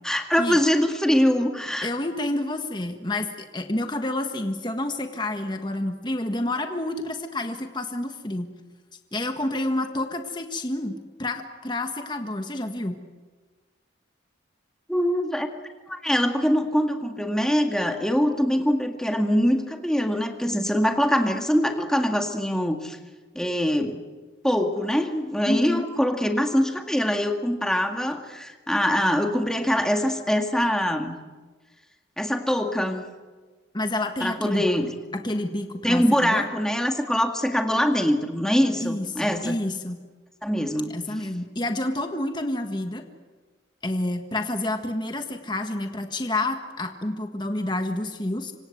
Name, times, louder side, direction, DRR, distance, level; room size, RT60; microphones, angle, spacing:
voice 1, 0.0-1.9 14.9-15.5 15.9-23.0 23.4-24.0 24.4-31.2 32.2-33.0 34.2-34.9 35.8-39.6 40.4-40.9, equal, 5° left, 4 dB, 2.0 m, -23 dB
voice 2, 1.8-8.5 9.1-13.0 25.5-25.8 33.7-34.7 35.1-36.5 38.8-40.0 40.9-43.0 43.8-48.5, left 1 dB, 25° left, 5 dB, 1.5 m, -29 dB
26.5 x 25.5 x 7.9 m, 1.3 s
head